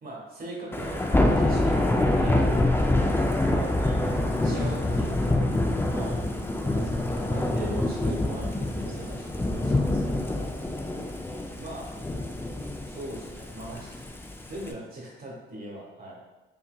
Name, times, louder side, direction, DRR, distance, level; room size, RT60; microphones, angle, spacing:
voice 1, 0.0-6.1 6.6-10.5 11.6-11.9 12.9-14.0 14.2-16.2, right 1 dB, 50° right, -3 dB, 1.4 m, -40 dB
Thunder / Rain, 0.7-14.7, left 1 dB, 10° left, 0.4 m, -26 dB
5.5 x 2.8 x 2.2 m, 1.1 s
cardioid pair, 90°, 20 cm